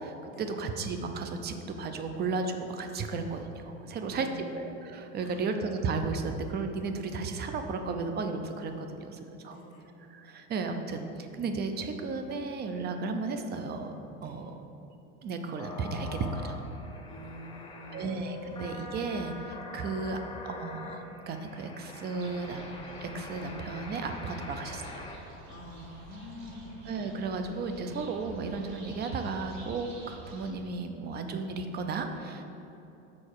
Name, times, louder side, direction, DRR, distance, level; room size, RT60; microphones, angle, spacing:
voice 1, 0.0-9.6 10.1-13.9 14.2-14.6 15.2-16.6 17.9-22.7 23.0-25.0 26.9-32.4, right 4 dB, 30° right, 6 dB, 0.6 m, -34 dB
voice 2, 3.8-4.6 5.1-5.4 9.4-9.9 14.2-14.4 17.0-18.2 25.5-26.8, left 1 dB, 35° left, -6 dB, 1.6 m, -47 dB
sound 1, 15.6-25.2, left 3 dB, 15° left, 0.6 m, -44 dB
sound 2, 22.2-30.5, right 3 dB, 50° right, 1.4 m, -50 dB
6.7 x 4.2 x 6.4 m, 3.0 s
supercardioid pair, 130°, 35 cm